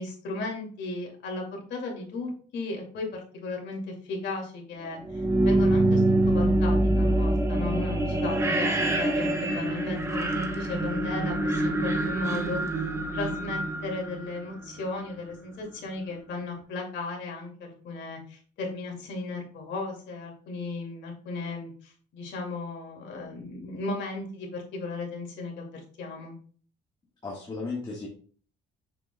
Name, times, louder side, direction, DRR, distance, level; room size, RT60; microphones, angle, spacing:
voice 1, 0.0-12.9 13.1-26.4, left 3 dB, 60° left, 0 dB, 2.4 m, -36 dB
sound 1, 5.0-14.9, right 1 dB, 15° right, 0.9 m, -25 dB
voice 2, 27.2-28.1, left 3 dB, 20° left, -4 dB, 1.5 m, -34 dB
7.0 x 6.2 x 2.2 m, 0.43 s
cardioid pair, 160°, 20 cm